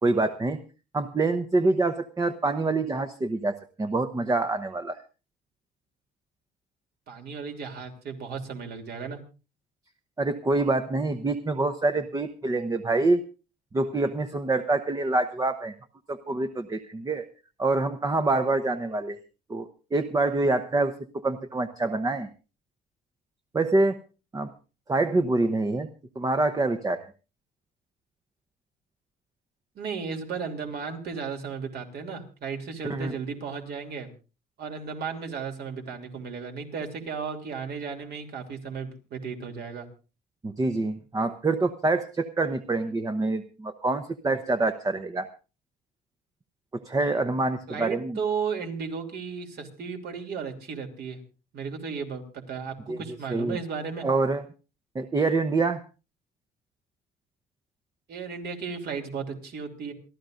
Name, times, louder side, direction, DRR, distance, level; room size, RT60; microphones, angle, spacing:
voice 1, 0.0-0.6 0.9-5.0 10.2-13.2 13.7-15.7 16.1-17.2 17.6-19.2 19.5-22.3 23.5-24.0 24.3-24.5 24.9-25.9 26.2-27.1 32.9-33.1 40.4-45.3 46.7-48.2 52.9-53.0 53.3-53.6 54.0-54.4 54.9-55.8, right 2 dB, 20° right, 9 dB, 0.8 m, -26 dB
voice 2, 7.1-9.2 29.7-34.1 34.6-39.9 47.7-51.2 51.5-54.1 58.1-59.9, right 5 dB, 60° right, 4 dB, 3.0 m, -34 dB
27.5 x 12.5 x 2.5 m, 0.34 s
cardioid pair, 125°, 19 cm